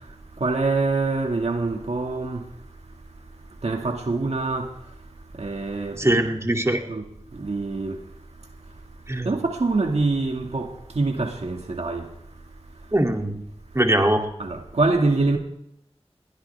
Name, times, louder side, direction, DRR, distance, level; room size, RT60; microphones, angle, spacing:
voice 1, 0.4-2.4 3.6-4.7 5.4-6.3 6.9-7.0 7.4-8.0 9.3-12.1 14.4-15.4, right 3 dB, 85° right, 2.0 m, -25 dB
voice 2, 6.0-6.8 9.1-9.3 12.9-13.4 13.7-14.3, right 1 dB, 25° right, 2.6 m, -21 dB
21.5 x 16.5 x 3.4 m
wide cardioid pair, 40°, 11 cm